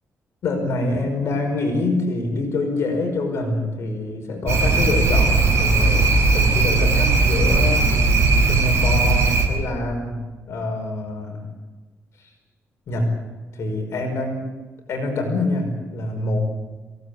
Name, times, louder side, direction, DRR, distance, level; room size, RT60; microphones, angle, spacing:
voice 1, 0.4-7.9 8.4-10.2 10.5-11.4 12.2-12.3 12.9-13.1 13.5-14.4 14.9-16.5, left 2 dB, 60° left, 3 dB, 5.3 m, -25 dB
sound 1, 4.5-9.5, right 3 dB, 55° right, 8.0 m, -18 dB
27.5 x 17.0 x 8.5 m, 1.3 s
wide cardioid pair, 175°, 5 cm